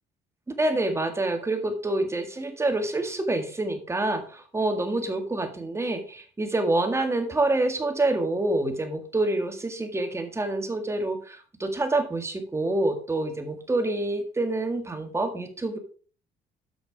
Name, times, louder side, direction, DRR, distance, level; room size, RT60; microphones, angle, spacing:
voice 1, 0.6-15.8, right 2 dB, 15° right, 6 dB, 1.8 m, -27 dB
8.3 x 6.0 x 4.7 m, 0.40 s
cardioid pair, 110°, 17 cm